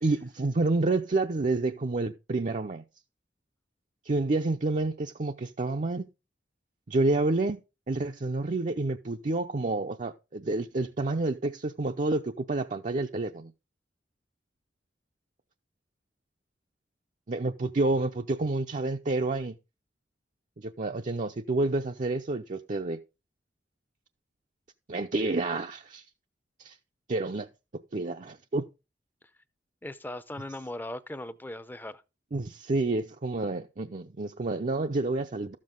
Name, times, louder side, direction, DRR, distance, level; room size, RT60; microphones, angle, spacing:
voice 1, 0.0-2.8 4.0-6.1 6.9-7.6 7.9-13.5 17.3-19.6 20.6-23.0 24.9-26.0 26.6-26.8 27.1-27.5 27.9-28.6 32.3-35.6, right 2 dB, 45° right, 0.6 m, -29 dB
voice 2, 29.8-32.0, left 1 dB, 10° left, 0.7 m, -38 dB
13.0 x 7.5 x 3.7 m
head